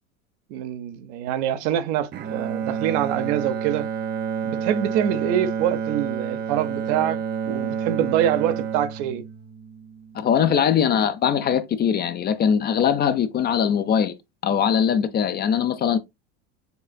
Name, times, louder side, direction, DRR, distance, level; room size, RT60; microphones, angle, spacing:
voice 1, 0.5-3.9 4.4-7.2 7.5-9.2, right 10 dB, 65° right, 0.7 m, -25 dB
Bowed string instrument, 2.1-10.3, right 7 dB, 30° right, 0.4 m, -29 dB
voice 2, 10.1-14.1 14.4-16.0, left 8 dB, 30° left, 0.4 m, -21 dB
6.6 x 2.4 x 2.2 m
hypercardioid pair, 95°, 36 cm